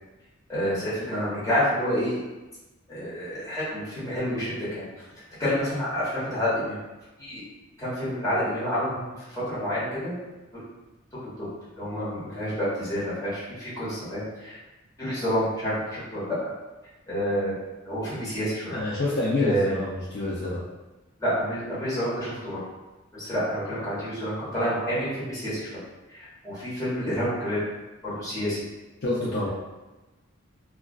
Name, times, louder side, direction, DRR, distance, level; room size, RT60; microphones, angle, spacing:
voice 1, 0.5-2.2 2.9-4.9 5.4-6.8 7.2-7.4 7.8-10.2 10.5-10.6 11.1-11.5 11.8-14.6 15.0-16.3 17.1-17.5 17.8-18.7 19.4-19.8 21.2-22.6 23.1-25.7 26.1-27.6 28.0-28.6, equal, 15° left, -11 dB, 1.1 m, -28 dB
voice 2, 18.7-20.6 29.0-29.5, left 2 dB, 55° left, -7 dB, 0.5 m, -27 dB
2.4 x 2.2 x 2.3 m, 1.1 s
head